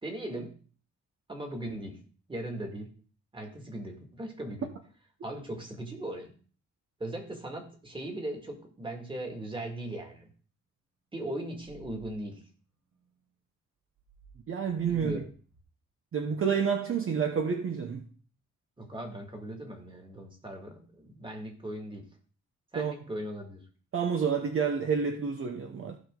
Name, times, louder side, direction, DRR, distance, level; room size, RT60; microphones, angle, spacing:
voice 1, 0.0-0.6 1.3-2.0 2.3-2.9 3.3-4.7 5.2-6.3 7.0-10.3 11.1-12.4 14.9-15.3 18.8-22.1 22.7-23.6, right 1 dB, 15° right, 2.2 m, -38 dB
sound 1, 11.6-12.1 14.0-15.1 15.5-15.6, right 5 dB, 60° right, 2.2 m, -54 dB
voice 2, 14.5-15.2 16.1-18.1 22.7-22.9 23.9-26.0, right 6 dB, 45° right, 1.0 m, -29 dB
16.0 x 5.5 x 3.8 m
wide cardioid pair, 145°, 29 cm